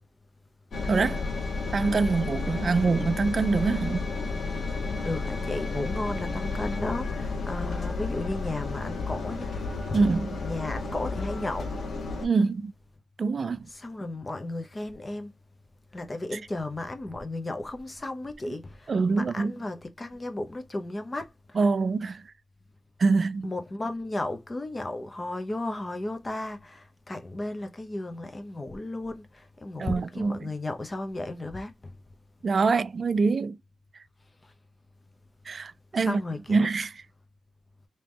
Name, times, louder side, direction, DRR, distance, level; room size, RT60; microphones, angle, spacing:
Engine, 0.7-12.3, left 3 dB, 70° left, 1.2 m, -32 dB
voice 1, 0.9-1.2 1.7-4.1 9.9-10.4 12.2-12.7 13.2-13.7 18.9-19.5 21.5-22.2 23.0-23.5 29.8-30.5 32.4-33.6 35.5-36.2 36.5-36.9, right 4 dB, 55° right, 0.3 m, -25 dB
voice 2, 5.0-10.1 10.4-11.9 13.7-15.3 15.9-21.8 23.4-31.9 34.4-34.5 35.9-36.9, left 2 dB, 30° left, 0.9 m, -34 dB
3.5 x 2.9 x 3.2 m
cardioid pair, 80°, 0 cm